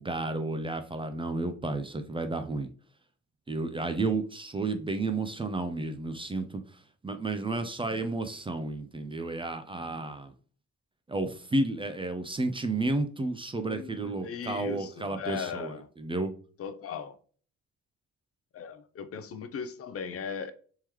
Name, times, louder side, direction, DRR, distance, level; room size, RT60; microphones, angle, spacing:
voice 1, 0.0-2.7 3.5-6.6 7.0-10.3 11.1-16.3, right 2 dB, 15° right, 0.4 m, -32 dB
voice 2, 13.6-15.9 16.6-17.1 18.5-20.5, left 6 dB, 50° left, 0.5 m, -38 dB
3.6 x 3.0 x 3.0 m
cardioid pair, 90°, 30 cm